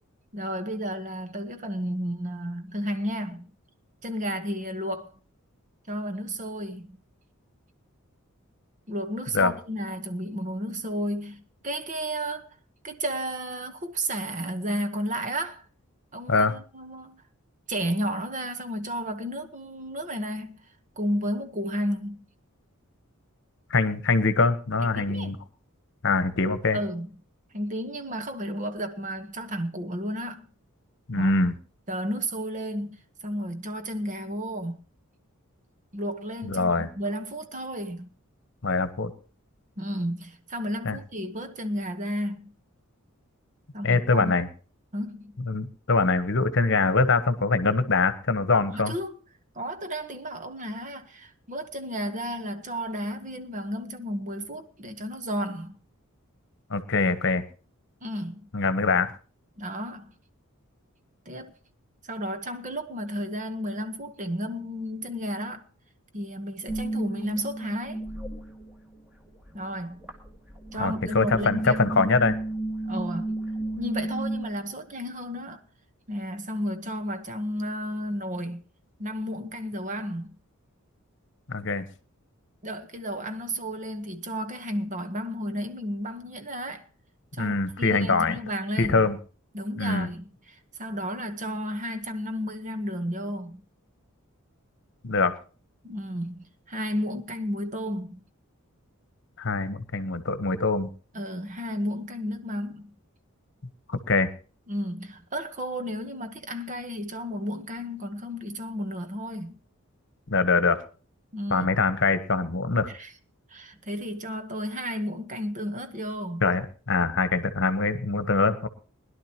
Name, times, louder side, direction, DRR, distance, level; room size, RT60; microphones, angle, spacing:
voice 1, 0.3-3.5 4.0-5.1 5.9-7.0 8.9-12.5 12.8-15.6 16.1-17.2 17.7-20.7 21.0-22.3 24.8-25.4 26.7-27.1 27.5-30.5 31.1-31.4 31.9-34.8 35.9-38.1 39.8-42.5 43.7-44.4 44.9-45.4 48.7-49.2 49.5-55.8 58.0-58.5 59.6-60.1 61.2-61.5 62.0-65.7 66.1-68.1 69.5-70.0 70.7-71.8 72.8-73.3 73.8-75.6 76.1-78.6 79.0-80.4 82.6-86.9 87.3-89.1 89.5-93.6 95.8-98.2 101.1-102.9 104.7-109.6 111.3-111.7 112.9-113.1 113.5-116.4, equal, 35° right, 1.1 m, -32 dB
voice 2, 23.7-25.4 26.0-26.8 31.1-31.6 36.4-36.9 38.6-39.1 40.8-41.0 43.8-44.5 45.5-48.9 56.7-57.4 58.5-59.1 70.8-72.4 81.5-81.9 87.4-88.3 88.8-89.2 89.8-90.1 95.0-95.3 99.4-100.9 103.9-104.3 110.3-110.8 111.5-112.9 116.4-118.7, left 3 dB, 55° left, 1.1 m, -23 dB
sound 1, 66.7-69.0 69.3-74.5, right 2 dB, 5° right, 1.9 m, -33 dB
21.0 x 11.5 x 2.9 m
head